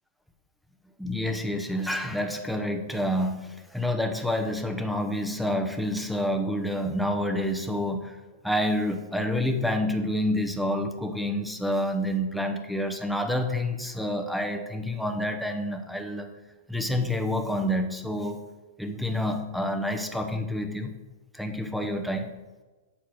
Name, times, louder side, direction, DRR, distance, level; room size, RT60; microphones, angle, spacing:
voice 1, 1.0-16.3 16.7-18.4 18.8-20.9 21.3-22.3, left 1 dB, ahead, 4 dB, 0.9 m, -28 dB
8.5 x 4.7 x 6.0 m, 1.2 s
hypercardioid pair, 135°, 0 cm